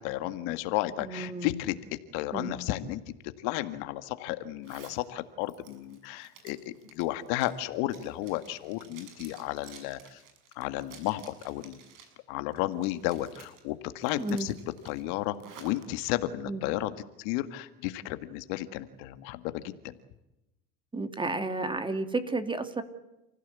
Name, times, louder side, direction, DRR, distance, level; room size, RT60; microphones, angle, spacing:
voice 1, 0.0-1.7 2.1-3.0 3.4-10.2 10.6-11.8 12.3-14.5 14.9-16.9 17.2-19.9, left 15 dB, 70° left, 11 dB, 1.8 m, -33 dB
voice 2, 1.0-1.6 2.3-2.6 14.2-14.5 16.5-16.6 20.9-22.8, right 3 dB, 15° right, 9 dB, 2.6 m, -32 dB
Zipper (clothing), 4.6-5.0 5.4-12.2 12.5-13.6 14.0-15.8, right 7 dB, 60° right, 6.8 m, -53 dB
29.5 x 16.0 x 8.3 m, 0.94 s
supercardioid pair, 105°, 36 cm